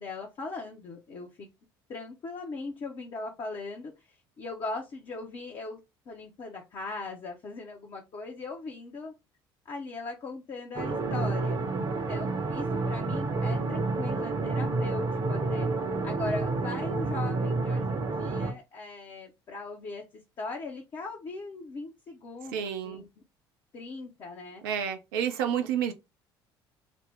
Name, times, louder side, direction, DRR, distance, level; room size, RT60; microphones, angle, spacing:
voice 1, 0.0-1.5 1.9-5.8 6.1-9.1 9.6-11.6 12.1-15.7 16.0-23.1 23.7-24.6, left 3 dB, 40° left, 0.9 m, -39 dB
sound 1, 10.8-18.5, right 3 dB, 35° right, 0.9 m, -29 dB
voice 2, 22.5-23.0 24.6-25.9, right 8 dB, 70° right, 0.7 m, -29 dB
4.0 x 2.2 x 3.4 m
figure-of-eight pair, 55°, 12 cm